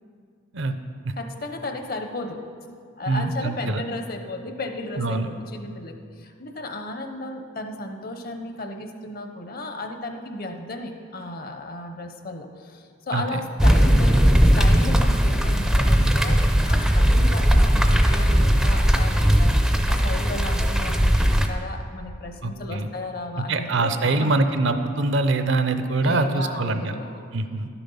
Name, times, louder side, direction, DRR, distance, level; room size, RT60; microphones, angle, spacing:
voice 1, 1.2-2.4 3.0-16.4 16.7-24.4 26.0-27.2, left 2 dB, 45° left, 5 dB, 0.8 m, -34 dB
voice 2, 3.1-3.8 5.0-5.3 13.1-13.4 22.4-22.9 23.4-27.0 27.3-27.7, right 2 dB, 60° right, 9 dB, 0.6 m, -24 dB
sound 1, 13.6-21.5, equal, ahead, 0.4 m, -18 dB
11.5 x 7.0 x 5.5 m, 2.2 s
head